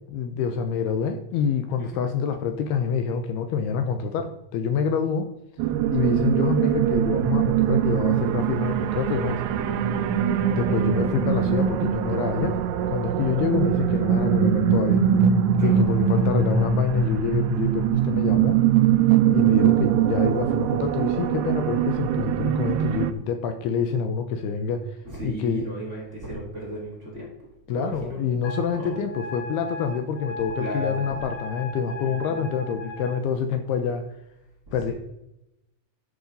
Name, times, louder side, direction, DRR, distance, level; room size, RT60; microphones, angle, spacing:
voice 1, 0.1-5.3 5.9-9.4 10.6-12.6 12.9-15.0 15.6-18.6 19.3-25.0 25.2-25.6 27.7-34.1 34.7-34.9, left 6 dB, 75° left, 8 dB, 2.6 m, -27 dB
sound 1, 5.6-23.1, right 9 dB, 80° right, 2.7 m, -22 dB
voice 2, 25.0-27.3 27.7-28.2 28.6-29.0 30.6-31.2 32.0-32.5 34.7-34.9, right 1 dB, 20° right, -3 dB, 2.5 m, -36 dB
Wind instrument woodwind instrument, 28.4-33.2, left 1 dB, 60° left, 5.9 m, -37 dB
11.5 x 6.8 x 5.2 m, 0.86 s
omnidirectional pair, 4.9 m